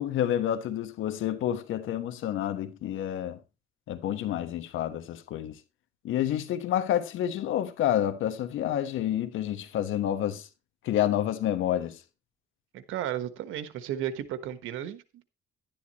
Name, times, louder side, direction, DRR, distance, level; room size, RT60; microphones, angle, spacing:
voice 1, 0.0-3.4 3.9-5.6 6.0-10.5 10.8-12.0, left 11 dB, 85° left, 1.3 m, -29 dB
voice 2, 12.7-15.2, right 11 dB, 90° right, 1.3 m, -34 dB
11.5 x 10.5 x 3.0 m
cardioid pair, 90°, 20 cm